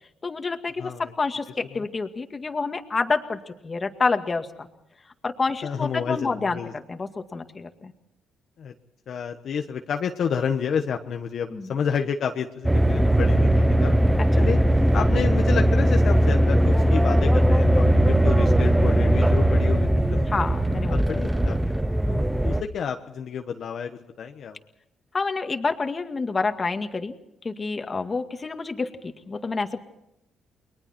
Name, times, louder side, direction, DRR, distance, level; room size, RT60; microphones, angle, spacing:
voice 1, 0.2-4.7 5.2-7.9 11.5-11.7 14.4-14.5 20.3-21.0 22.1-22.5 25.1-27.2 27.4-29.8, left 4 dB, 30° left, 6 dB, 2.0 m, -28 dB
voice 2, 0.8-1.1 5.6-6.7 8.6-8.7 9.1-13.9 14.4-14.6 14.9-20.3 20.9-21.8 22.4-24.6, left 7 dB, 60° left, 4 dB, 1.3 m, -30 dB
sound 1, 12.6-22.6, right 1 dB, 10° right, 0.8 m, -19 dB
29.5 x 22.0 x 4.5 m, 0.83 s
cardioid pair, 90°, 0 cm